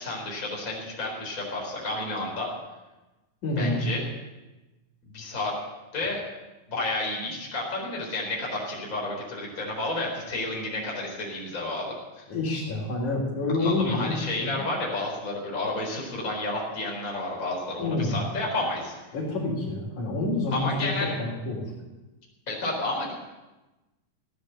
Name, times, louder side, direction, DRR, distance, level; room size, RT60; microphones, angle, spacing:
voice 1, 0.0-2.5 3.6-4.1 5.0-5.5 5.9-6.2 6.7-12.2 13.6-19.0 20.5-21.2 22.5-23.1, left 2 dB, 25° left, -2 dB, 4.5 m, -31 dB
voice 2, 3.4-3.8 12.3-14.6 17.8-18.2 19.1-21.7, left 2 dB, 60° left, -3 dB, 4.8 m, -28 dB
16.0 x 10.5 x 7.8 m, 1.1 s
omnidirectional pair, 4.0 m